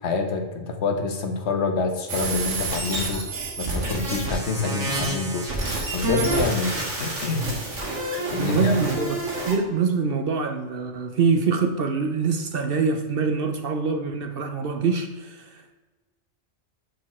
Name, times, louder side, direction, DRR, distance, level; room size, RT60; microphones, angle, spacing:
voice 1, 0.0-3.3 3.6-7.5 8.3-8.7, left 4 dB, 65° left, 5 dB, 1.3 m, -27 dB
sound 1, 2.1-9.5, right 2 dB, 75° right, 2.2 m, -28 dB
voice 2, 8.4-15.7, right 5 dB, 55° right, 6 dB, 0.8 m, -25 dB
6.7 x 6.5 x 4.2 m, 1.3 s
omnidirectional pair, 1.2 m